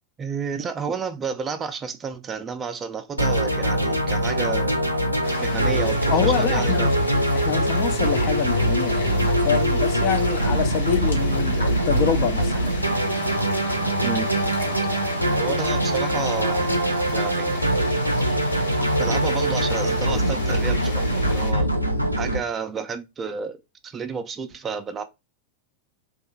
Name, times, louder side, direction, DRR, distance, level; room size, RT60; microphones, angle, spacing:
voice 1, 0.2-4.8 5.4-6.9 14.0-14.3 15.4-16.8 17.1-17.6 19.0-21.7 22.2-23.6 23.8-25.0, right 5 dB, 20° right, 0.4 m, -31 dB
sound 1, 3.2-22.4, right 1 dB, 90° right, 0.4 m, -23 dB
sound 2, 5.2-21.5, left 2 dB, 75° left, 0.8 m, -35 dB
voice 2, 6.1-6.9 7.3-12.8, left 8 dB, 40° left, 0.4 m, -26 dB
2.6 x 2.3 x 2.7 m
figure-of-eight pair, 90°, 0 cm